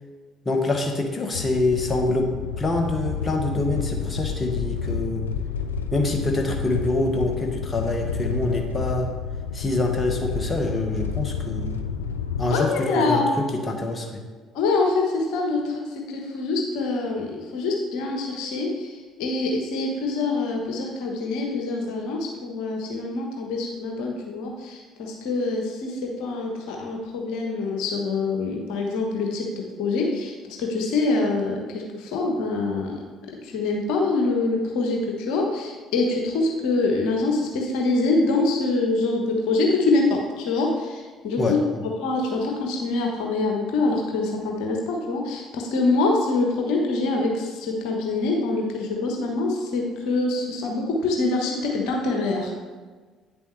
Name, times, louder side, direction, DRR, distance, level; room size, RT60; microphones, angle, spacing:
voice 1, 0.4-5.3 5.9-9.1 9.5-11.8 12.4-14.2 41.4-41.8, left 2 dB, 30° left, 2 dB, 1.3 m, -25 dB
sound 1, 1.3-12.5, left 6 dB, 85° left, 0.4 m, -30 dB
voice 2, 12.5-13.4 14.5-33.0 33.4-41.6 42.0-52.6, left 3 dB, 70° left, 1 dB, 1.1 m, -25 dB
9.2 x 6.9 x 3.2 m, 1.4 s
hypercardioid pair, 55°, 0 cm